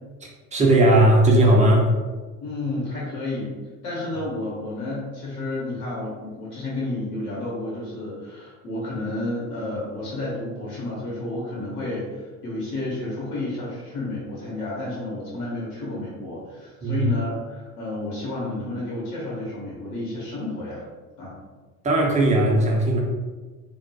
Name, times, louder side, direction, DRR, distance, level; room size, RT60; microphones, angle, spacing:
voice 1, 0.5-1.9 16.8-17.1 21.8-23.0, right 1 dB, 15° right, -2 dB, 0.5 m, -17 dB
voice 2, 2.4-3.6 3.8-20.8 21.2-21.3, left 2 dB, 75° left, -6 dB, 0.9 m, -31 dB
2.2 x 2.1 x 2.7 m, 1.3 s
figure-of-eight pair, 70°, 45 cm